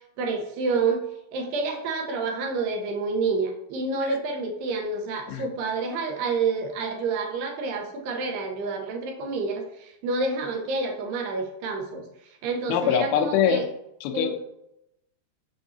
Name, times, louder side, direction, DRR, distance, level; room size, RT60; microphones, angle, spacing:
voice 1, 0.2-1.0 1.3-12.0 12.4-13.7 14.1-14.3, right 4 dB, 80° right, 2 dB, 2.9 m, -28 dB
voice 2, 12.7-13.6 14.0-14.4, left 9 dB, 85° left, 4 dB, 2.9 m, -23 dB
7.1 x 6.0 x 2.7 m, 0.82 s
omnidirectional pair, 4.8 m